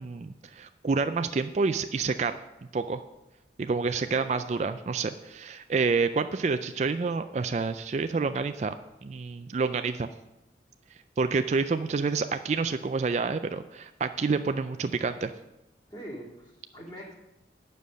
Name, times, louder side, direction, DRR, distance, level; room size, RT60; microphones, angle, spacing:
voice 1, 0.0-2.4 2.7-3.0 3.6-8.7 9.0-10.1 11.2-15.3, right 4 dB, 40° right, 9 dB, 0.3 m, -28 dB
voice 2, 3.7-4.4 15.9-17.1, equal, 25° left, -3 dB, 2.5 m, -44 dB
9.4 x 6.8 x 6.3 m, 0.95 s
head